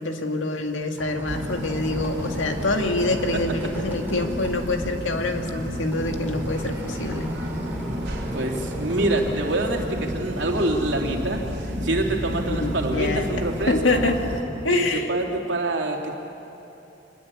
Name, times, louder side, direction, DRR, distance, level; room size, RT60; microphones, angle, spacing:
voice 1, 0.0-7.3 12.4-14.2 14.6-15.1, left 2 dB, 85° left, 4 dB, 2.1 m, -26 dB
sound 1, 0.8-9.4, right 1 dB, 10° right, 4.2 m, -38 dB
sound 2, 1.3-14.4, equal, 55° right, 3.6 m, -31 dB
voice 2, 8.3-14.0 14.6-16.2, right 1 dB, 70° right, 1 dB, 3.1 m, -26 dB
25.5 x 20.5 x 8.6 m, 2.9 s
head